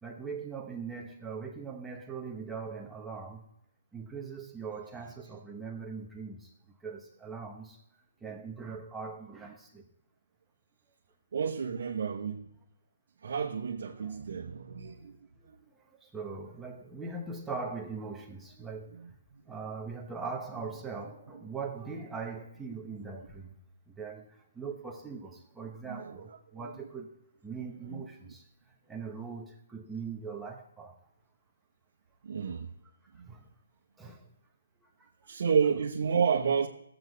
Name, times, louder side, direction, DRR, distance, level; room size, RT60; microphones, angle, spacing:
voice 1, 0.0-3.5 3.9-6.5 6.8-7.8 8.2-9.8 14.0-14.2 14.9-15.1 15.6-15.7 16.0-19.0 19.5-23.5 23.9-27.1 27.4-28.4 28.9-31.0 33.2-33.5 34.0-34.3 34.8-35.1, right 5 dB, 5° right, 0.9 m, -41 dB
voice 2, 11.3-12.5 13.2-15.2 15.4-15.6 18.9-19.0 19.3-19.4 21.3-21.4 25.9-26.4 26.6-26.7 27.9-28.0 32.2-32.7 33.1-33.3 35.3-36.7, right 6 dB, 55° right, 1.1 m, -31 dB
18.0 x 8.0 x 4.0 m
hypercardioid pair, 170°, 0 cm